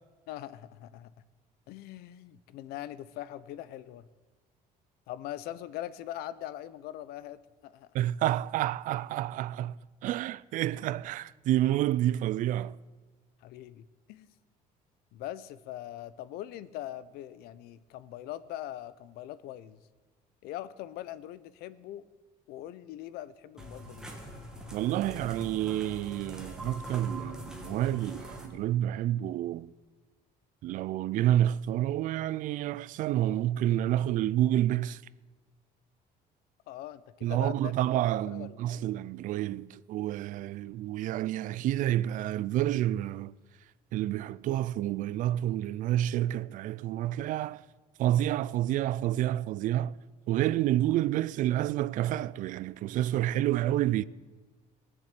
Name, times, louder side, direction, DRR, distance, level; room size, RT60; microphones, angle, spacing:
voice 1, 0.3-1.1 1.7-4.1 5.1-7.9 13.4-14.3 15.1-19.8 20.4-22.0 22.5-24.2 36.7-37.7 38.3-38.9, left 13 dB, 85° left, 0.7 m, -42 dB
voice 2, 7.9-12.8 24.7-29.7 30.6-35.0 37.2-43.3 43.9-47.6 48.0-50.0 50.3-54.0, right 13 dB, 55° right, 0.4 m, -29 dB
sound 1, 23.6-28.5, equal, 5° right, 2.0 m, -43 dB
20.0 x 7.2 x 8.2 m
cardioid pair, 155°, 16 cm